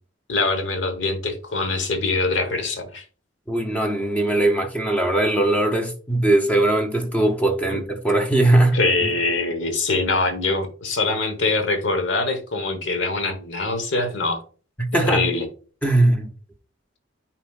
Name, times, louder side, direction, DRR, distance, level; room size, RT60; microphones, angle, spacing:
voice 1, 0.3-3.0 7.7-7.8 8.7-14.4 14.9-15.5, left 3 dB, 70° left, 1.2 m, -23 dB
voice 2, 3.5-9.1 14.8-15.3 15.8-16.3, right 1 dB, 10° left, 0.6 m, -20 dB
9.1 x 4.5 x 2.4 m
head